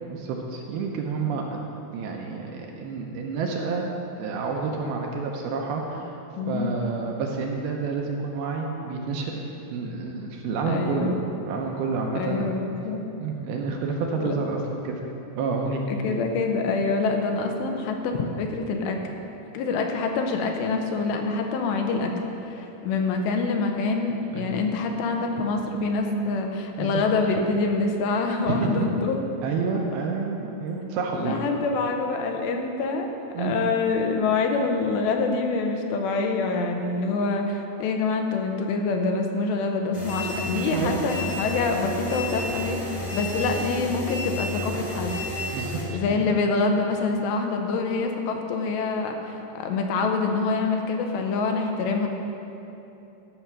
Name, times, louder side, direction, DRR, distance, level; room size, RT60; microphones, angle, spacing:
voice 1, 0.0-1.6 1.9-3.9 4.2-6.1 6.5-9.4 9.7-11.1 11.5-12.6 13.2-14.9 15.4-16.2 24.3-24.5 26.8-27.0 28.5-28.9 29.4-31.4 33.3-33.5 40.7-41.0 45.5-46.4, right 4 dB, 75° right, 0 dB, 2.5 m, -29 dB
voice 2, 6.4-6.7 10.6-11.2 12.1-13.1 14.2-14.3 15.9-19.0 19.5-22.1 22.4-29.2 31.1-33.1 33.4-45.2 45.9-52.1, left 4 dB, 85° left, 3 dB, 3.0 m, -26 dB
sound 1, 39.9-45.8, left 1 dB, 50° left, 0.8 m, -31 dB
13.5 x 5.6 x 6.1 m, 2.9 s
omnidirectional pair, 4.9 m